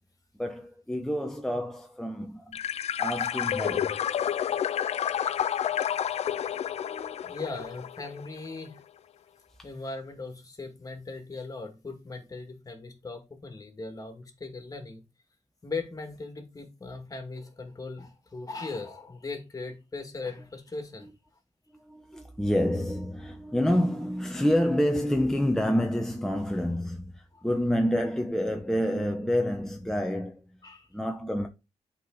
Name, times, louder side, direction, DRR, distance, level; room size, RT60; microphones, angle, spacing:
voice 1, 0.4-2.6 3.0-4.0 6.8-7.2 21.0-21.1 21.7-30.6 30.9-31.5, equal, 5° left, 0.8 m, -28 dB
sound 1, 2.5-8.3, left 9 dB, 65° left, 0.4 m, -30 dB
voice 2, 7.2-8.8 9.6-15.0 15.6-21.1 30.6-30.9, left 3 dB, 30° left, 2.2 m, -39 dB
7.9 x 4.5 x 3.9 m
cardioid pair, 85°, 12 cm